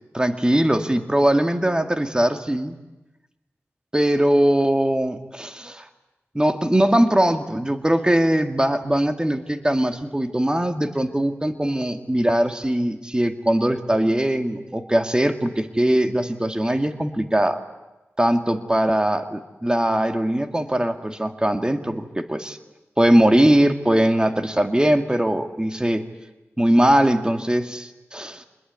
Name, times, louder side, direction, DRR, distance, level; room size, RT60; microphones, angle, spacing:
voice 1, 0.1-2.7 3.9-5.9 6.3-17.6 18.2-22.6 23.0-26.1 26.6-28.4, right 1 dB, 15° right, 6 dB, 2.2 m, -21 dB
25.0 x 21.5 x 9.6 m, 1.0 s
wide cardioid pair, 55°, 5 cm